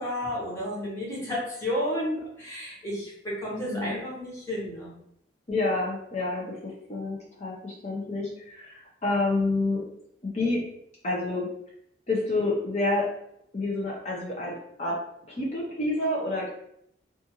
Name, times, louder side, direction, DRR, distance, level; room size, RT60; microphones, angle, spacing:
voice 1, 0.0-4.9, left 1 dB, 15° left, -6 dB, 1.0 m, -32 dB
voice 2, 3.6-4.0 5.5-9.8 10.2-10.6 11.0-11.5 12.1-13.1 13.5-15.0 15.3-16.5, left 2 dB, 40° left, -4 dB, 0.6 m, -28 dB
2.5 x 2.4 x 2.8 m, 0.73 s
head